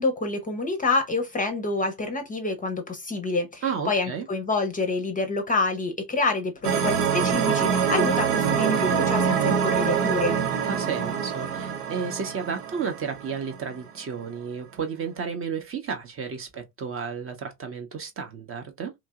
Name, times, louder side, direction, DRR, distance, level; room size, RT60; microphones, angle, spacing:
voice 1, 0.0-10.4, left 3 dB, 20° left, 0.6 m, -27 dB
voice 2, 3.6-4.3 10.7-18.9, right 6 dB, 30° right, 0.7 m, -32 dB
sound 1, 6.6-13.7, right 7 dB, 80° right, 0.7 m, -25 dB
2.9 x 2.6 x 2.3 m
figure-of-eight pair, 60°, 46 cm